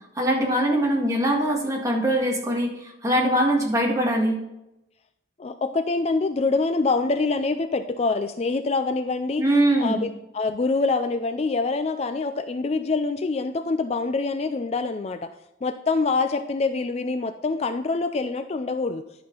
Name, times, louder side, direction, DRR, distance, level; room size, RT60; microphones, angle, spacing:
voice 1, 0.2-4.4 9.4-10.1, right 1 dB, 15° right, -1 dB, 1.8 m, -22 dB
voice 2, 5.4-9.4 9.8-10.1 10.3-15.3 15.6-19.0, left 3 dB, 35° left, 9 dB, 0.4 m, -25 dB
11.0 x 5.8 x 3.9 m, 0.89 s
head